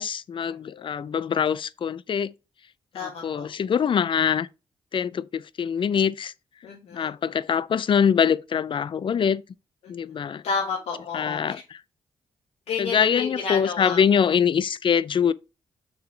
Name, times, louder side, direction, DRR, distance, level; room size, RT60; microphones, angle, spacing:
voice 1, 0.0-2.3 2.9-4.5 4.9-6.3 6.9-9.4 9.9-10.4 11.1-11.8 12.8-15.3, left 7 dB, 55° left, 0.5 m, -24 dB
voice 2, 2.9-3.5 6.6-7.1 9.8-9.9 10.4-11.4 12.7-14.0, left 5 dB, 75° left, 1.4 m, -30 dB
6.7 x 4.0 x 4.4 m
supercardioid pair, 55°, 10 cm